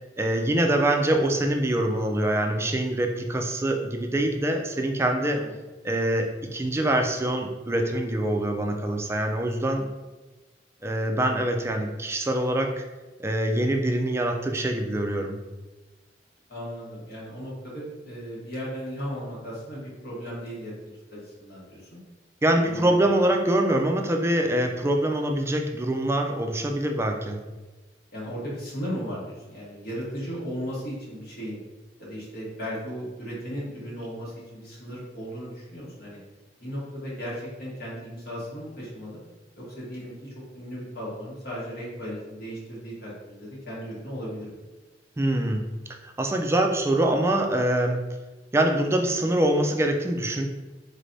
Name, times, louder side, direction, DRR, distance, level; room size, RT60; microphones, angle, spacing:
voice 1, 0.2-5.4 5.8-9.9 10.8-12.8 13.2-15.4 22.4-27.4 45.2-45.7 46.0-48.0 48.5-50.5, right 1 dB, 15° right, 3 dB, 0.3 m, -24 dB
voice 2, 5.1-5.5 16.5-22.0 22.6-23.0 28.1-31.6 32.0-36.2 36.6-39.2 39.6-44.6, equal, 60° left, -6 dB, 1.2 m, -36 dB
3.9 x 3.3 x 2.6 m, 1.2 s
head